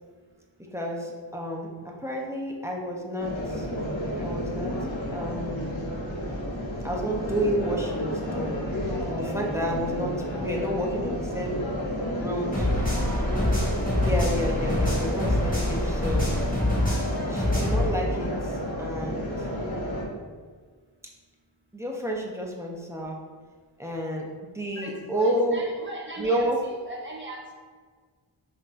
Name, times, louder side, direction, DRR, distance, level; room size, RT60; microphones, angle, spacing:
voice 1, 0.7-3.7 4.2-4.7 5.1-5.7 6.8-8.6 9.1-11.6 12.1-12.7 14.0-16.3 17.3-19.5 21.7-23.2 23.8-25.6 26.2-26.6, equal, 5° right, -2 dB, 0.6 m, -30 dB
sound 1, 3.2-20.0, equal, 80° left, 1.0 m, -31 dB
sound 2, 12.5-17.9, left 1 dB, 20° left, 1.4 m, -25 dB
voice 2, 12.6-13.0 24.7-27.4, right 2 dB, 25° right, -3 dB, 0.9 m, -39 dB
5.8 x 2.8 x 2.5 m, 1.5 s
wide cardioid pair, 70°, 46 cm